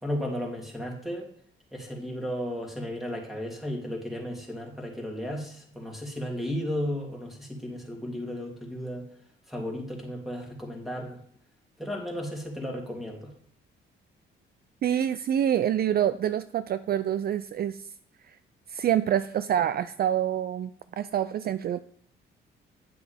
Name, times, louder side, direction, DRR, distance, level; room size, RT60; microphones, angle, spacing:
voice 1, 0.0-1.3 1.7-9.1 9.5-11.2 11.8-13.3, equal, ahead, 0 dB, 3.0 m, -34 dB
voice 2, 14.8-17.8 18.3-18.4 18.7-21.8, right 10 dB, 50° right, 13 dB, 0.4 m, -26 dB
9.4 x 7.7 x 3.5 m, 0.62 s
cardioid pair, 90°, 20 cm